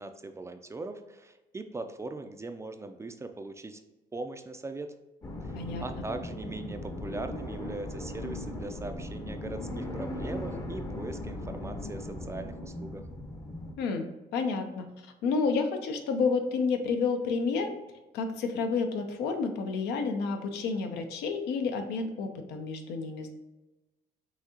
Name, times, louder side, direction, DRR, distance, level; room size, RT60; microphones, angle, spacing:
voice 1, 0.0-3.8 4.1-4.9 5.4-13.1, right 2 dB, 15° right, 7 dB, 0.3 m, -40 dB
sound 1, 5.2-13.7, left 1 dB, 20° left, 0.6 m, -38 dB
voice 2, 5.5-5.8 13.8-14.1 14.3-17.7 18.1-23.3, left 4 dB, 80° left, 6 dB, 0.7 m, -30 dB
5.7 x 2.8 x 2.9 m, 1.1 s
cardioid pair, 110°, 17 cm